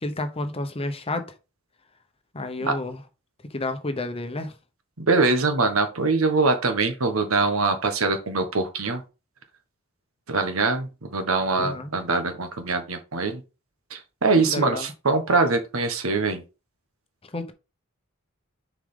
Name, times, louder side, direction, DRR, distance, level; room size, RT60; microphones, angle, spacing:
voice 1, 0.0-1.3 2.3-3.0 3.4-4.5 11.6-11.9 14.3-14.9 17.3-17.5, left 2 dB, 30° left, 1.0 m, -30 dB
voice 2, 5.0-9.0 10.3-13.4 13.9-16.4, right 3 dB, 85° right, 1.4 m, -23 dB
6.7 x 5.1 x 3.8 m
head